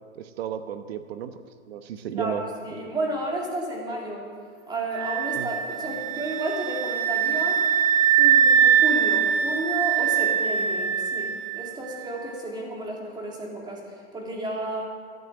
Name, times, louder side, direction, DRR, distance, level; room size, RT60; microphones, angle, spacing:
voice 1, 0.1-1.4 1.7-2.4 5.4-5.5, right 9 dB, 65° right, 10 dB, 1.0 m, -33 dB
voice 2, 2.1-4.3 4.7-7.6 8.2-13.8 14.1-14.8, right 1 dB, 10° right, -1 dB, 2.3 m, -32 dB
sound 1, 4.9-11.7, right 8 dB, 30° right, 0.9 m, -22 dB
12.0 x 9.5 x 7.7 m, 2.1 s
hypercardioid pair, 145°, 34 cm